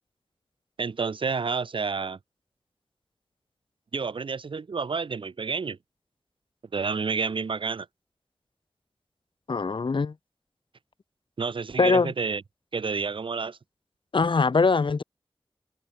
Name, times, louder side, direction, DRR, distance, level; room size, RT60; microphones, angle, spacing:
voice 1, 0.8-2.2 3.9-5.8 6.7-7.9 11.4-12.4 12.7-13.6, right 5 dB, 75° right, 0.6 m, -29 dB
voice 2, 9.5-10.1 11.8-12.1 14.1-15.0, left 4 dB, 70° left, 1.0 m, -22 dB
wide cardioid pair, 55°, 9 cm